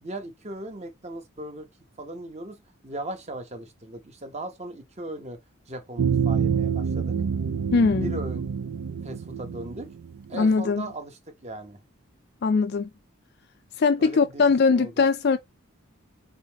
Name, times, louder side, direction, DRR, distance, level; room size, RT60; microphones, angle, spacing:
voice 1, 0.0-1.7 2.0-2.6 2.8-5.4 5.7-7.2 7.9-8.4 9.0-9.9 10.3-11.8 14.0-14.5 14.8-14.9, right 1 dB, 30° right, 0.9 m, -38 dB
sound 1, 6.0-10.4, right 6 dB, 90° right, 0.5 m, -27 dB
voice 2, 7.7-8.1 10.3-10.9 12.4-12.9 13.8-15.4, left 4 dB, 50° left, 0.3 m, -21 dB
4.2 x 4.0 x 2.9 m
head